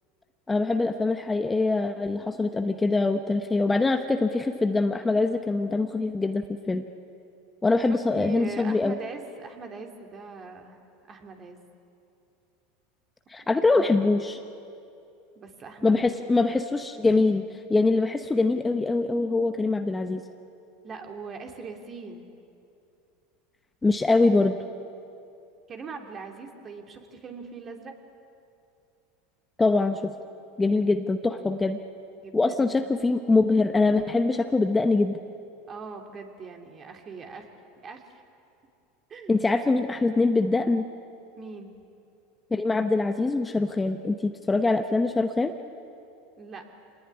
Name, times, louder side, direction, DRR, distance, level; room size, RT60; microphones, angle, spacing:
voice 1, 0.5-6.8 7.6-9.0 13.3-14.4 15.8-20.2 23.8-24.6 29.6-30.1 30.6-31.8 32.3-35.2 39.3-40.8 42.5-45.5, left 3 dB, 15° left, 7 dB, 1.0 m, -23 dB
voice 2, 7.9-10.8 11.1-11.6 15.3-16.2 20.8-22.3 25.7-27.9 32.2-32.9 35.7-37.5 37.8-38.2 39.1-39.3 41.4-41.7 46.4-46.6, right 4 dB, 35° right, 3 dB, 3.0 m, -41 dB
25.0 x 19.0 x 9.8 m, 2.6 s
hypercardioid pair, 105°, 0 cm